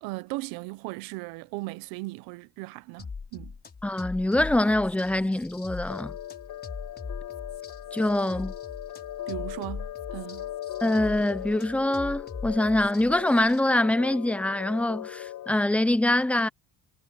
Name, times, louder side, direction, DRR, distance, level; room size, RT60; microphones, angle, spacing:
voice 1, 0.0-3.5 9.3-10.5, right 23 dB, 90° right, 0.8 m, -37 dB
sound 1, 3.0-13.6, left 5 dB, 30° left, 6.0 m, -41 dB
voice 2, 3.8-6.1 7.9-8.5 10.8-16.5, left 1 dB, 5° left, 0.5 m, -24 dB
sound 2, 5.9-15.5, left 13 dB, 65° left, 5.5 m, -39 dB
cardioid pair, 100°, 35 cm